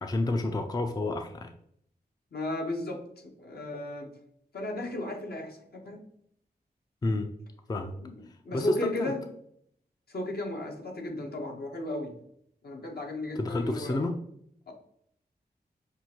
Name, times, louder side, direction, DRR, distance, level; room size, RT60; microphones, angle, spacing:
voice 1, 0.0-1.5 7.0-7.3 7.7-7.9 8.5-9.1 13.4-14.1, left 2 dB, 25° left, 6 dB, 0.4 m, -29 dB
voice 2, 2.3-4.1 4.5-6.0 8.0-9.3 10.1-12.2 12.6-14.1 14.7-14.8, left 1 dB, 65° left, 1 dB, 1.0 m, -35 dB
6.0 x 2.5 x 2.8 m, 0.70 s
wide cardioid pair, 70°, 17 cm